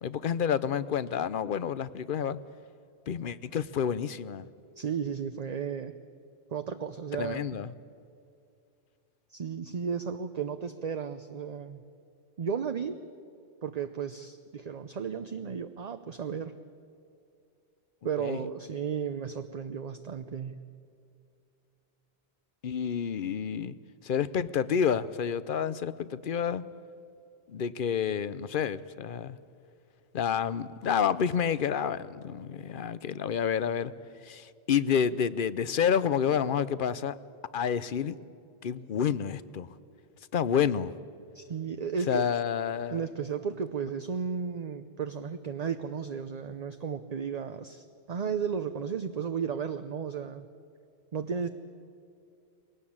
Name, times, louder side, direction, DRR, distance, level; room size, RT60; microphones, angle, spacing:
voice 1, 0.0-2.4 3.1-4.5 7.2-7.7 18.2-18.4 22.6-23.8 24.0-26.6 27.5-29.4 30.1-33.9 34.2-37.1 37.5-38.2 38.6-39.7 40.3-40.9 42.1-43.0, left 7 dB, 60° left, 16 dB, 0.8 m, -29 dB
voice 2, 4.8-6.0 6.5-7.6 9.3-11.8 12.4-13.0 13.6-16.5 18.0-20.6 41.3-42.3 42.9-50.4 51.1-51.5, right 6 dB, 45° right, 8 dB, 0.7 m, -34 dB
21.5 x 18.0 x 8.7 m, 2.5 s
omnidirectional pair, 1.0 m